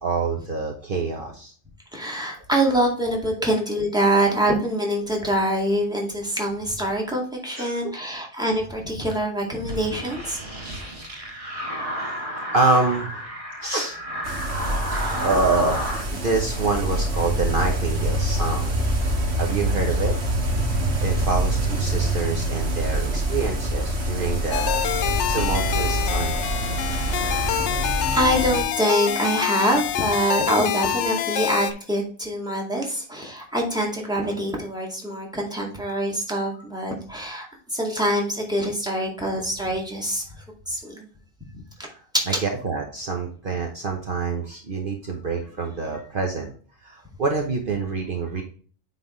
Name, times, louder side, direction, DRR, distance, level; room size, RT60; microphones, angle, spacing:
voice 1, 0.0-1.5 7.5-8.0 12.5-13.2 13.6-14.0 15.2-18.7 19.1-20.2 21.0-24.8 25.3-26.4 42.4-46.5 46.8-48.4, right 3 dB, 50° right, 3 dB, 1.1 m, -26 dB
voice 2, 1.9-10.4 15.0-15.3 20.7-20.8 26.9-27.6 28.1-40.2 40.7-41.1 41.5-41.6 42.3-42.4, right 1 dB, 5° right, 0 dB, 2.0 m, -25 dB
sound 1, 9.6-16.1, equal, 30° right, 1.8 m, -32 dB
sound 2, 14.2-28.6, right 1 dB, 70° right, 1.7 m, -25 dB
sound 3, 24.5-31.7, left 11 dB, 85° left, 0.9 m, -26 dB
9.1 x 4.0 x 3.1 m, 0.42 s
omnidirectional pair, 1.2 m